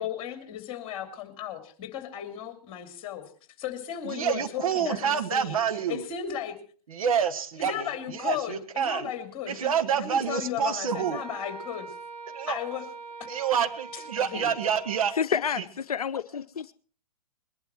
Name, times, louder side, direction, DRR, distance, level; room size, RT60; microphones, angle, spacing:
voice 1, 0.0-3.2 3.6-5.6 5.9-6.5 7.6-11.9 12.5-12.8 14.2-14.5, left 10 dB, 25° left, 3.0 m, -35 dB
voice 2, 4.0-6.0 6.9-9.1 9.5-11.2 12.3-12.6 13.3-15.1, right 8 dB, 60° right, 1.5 m, -28 dB
Wind instrument woodwind instrument, 10.9-15.2, right 4 dB, 75° right, 2.6 m, -42 dB
voice 3, 15.2-16.7, left 7 dB, 65° left, 0.7 m, -29 dB
21.5 x 11.5 x 4.5 m
figure-of-eight pair, 115°, 20 cm